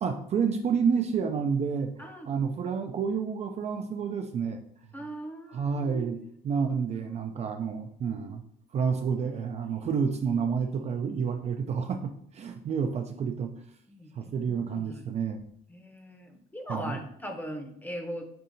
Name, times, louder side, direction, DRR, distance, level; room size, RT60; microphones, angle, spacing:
voice 1, 0.0-1.9 2.3-4.6 5.5-8.4 8.7-13.5 14.2-15.4 16.7-17.0, right 6 dB, 40° right, 5 dB, 0.4 m, -29 dB
voice 2, 4.9-6.3 6.6-6.7 13.9-15.0 15.7-18.2, equal, 10° left, 4 dB, 0.7 m, -40 dB
5.5 x 2.7 x 2.6 m, 0.69 s
cardioid pair, 110°, 17 cm